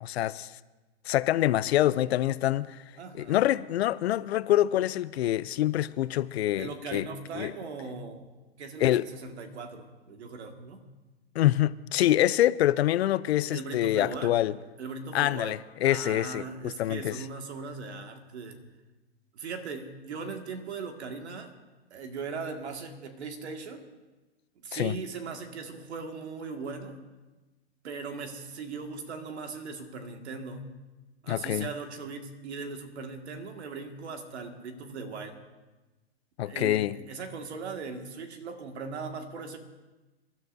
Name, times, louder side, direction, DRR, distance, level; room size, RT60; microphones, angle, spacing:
voice 1, 0.0-0.5 1.1-2.8 3.2-7.1 7.3-7.5 8.8-9.0 11.4-14.5 15.1-17.2 24.7-25.0 31.3-31.7 36.4-37.0, left 13 dB, 70° left, 0.6 m, -26 dB
voice 2, 3.0-3.4 6.6-8.3 8.6-10.8 13.5-14.3 14.8-15.6 15.8-18.6 19.3-21.5 21.9-23.8 24.6-27.0 27.8-30.7 31.2-35.4 36.4-39.6, right 4 dB, 80° right, 2.0 m, -39 dB
27.5 x 12.5 x 2.7 m
hypercardioid pair, 140°, 33 cm